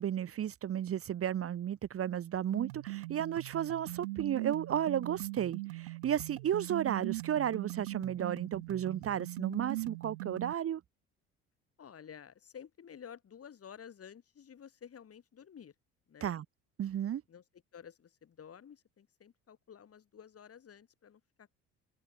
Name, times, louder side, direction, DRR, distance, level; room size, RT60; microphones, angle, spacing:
voice 1, 0.0-10.8 16.2-16.4 16.8-17.2, right 10 dB, 45° right, 1.1 m, -33 dB
sound 1, 2.5-10.5, right 22 dB, 90° right, 0.9 m, -40 dB
voice 2, 11.8-15.7 16.1-16.3 17.3-17.4 17.7-21.6, left 8 dB, 45° left, 7.5 m, -52 dB
open air
hypercardioid pair, 65°, 32 cm